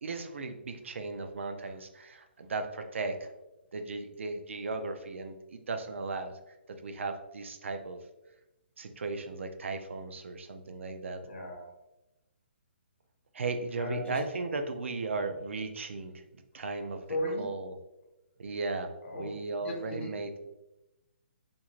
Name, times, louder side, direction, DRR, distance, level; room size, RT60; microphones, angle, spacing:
voice 1, 0.0-3.3 3.7-6.3 6.7-8.1 8.8-11.2 13.3-17.1 17.4-17.8 18.4-20.3, right 3 dB, 80° right, 7 dB, 0.4 m, -36 dB
voice 2, 11.3-11.7 13.8-14.2 17.1-17.4 19.0-19.3 19.6-20.1, left 1 dB, 75° left, 0 dB, 0.8 m, -35 dB
2.6 x 2.4 x 2.9 m, 0.96 s
hypercardioid pair, 170°, 7 cm